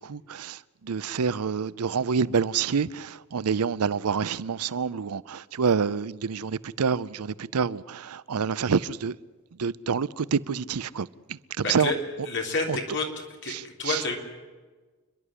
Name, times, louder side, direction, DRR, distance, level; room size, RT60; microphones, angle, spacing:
voice 1, 0.0-9.2 9.6-11.9 12.7-12.8 13.5-14.0, right 6 dB, 90° right, 0.6 m, -27 dB
voice 2, 11.6-12.0 12.3-13.1 13.4-14.2, left 3 dB, 60° left, 3.6 m, -29 dB
28.5 x 11.5 x 10.0 m
head